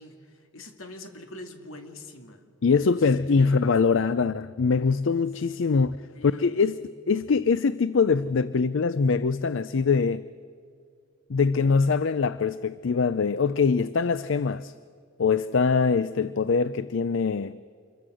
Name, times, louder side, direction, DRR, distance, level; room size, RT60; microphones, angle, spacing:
voice 1, 0.0-2.5 2.9-4.0 6.1-6.8, left 1 dB, 85° left, 2.4 m, -44 dB
voice 2, 2.6-6.0 6.2-6.8 7.1-10.2 11.3-14.7 15.2-17.6, left 5 dB, 70° left, 0.5 m, -23 dB
27.0 x 22.5 x 6.3 m
head